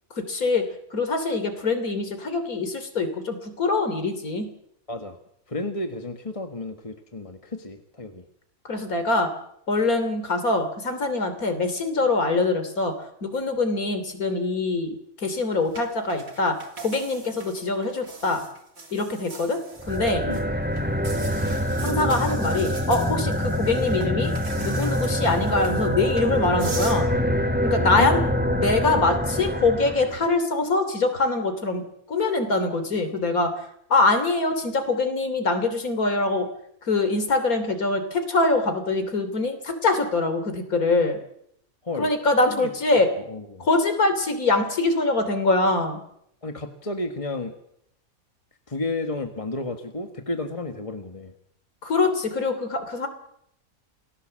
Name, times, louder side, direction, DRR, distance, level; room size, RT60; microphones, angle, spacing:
voice 1, 0.2-4.5 8.7-9.3 9.7-13.0 13.2-18.4 18.9-19.6 19.9-20.3 21.8-24.3 24.6-27.1 27.6-28.2 28.5-33.5 33.9-36.5 36.8-41.2 42.0-43.1 43.6-46.0 51.8-53.1, left 3 dB, 80° left, 8 dB, 3.5 m, -24 dB
voice 2, 4.9-5.2 5.5-8.2 20.2-20.5 27.9-28.1 41.8-42.1 42.5-42.7 43.2-43.7 46.4-47.5 48.7-51.3, left 2 dB, 25° left, 6 dB, 1.6 m, -32 dB
sound 1, 15.7-20.4 20.8-27.0, right 3 dB, 75° right, 3.6 m, -41 dB
sound 2, 19.8-30.3, equal, 5° right, 2.4 m, -25 dB
28.5 x 19.0 x 7.6 m, 0.75 s
omnidirectional pair, 1.5 m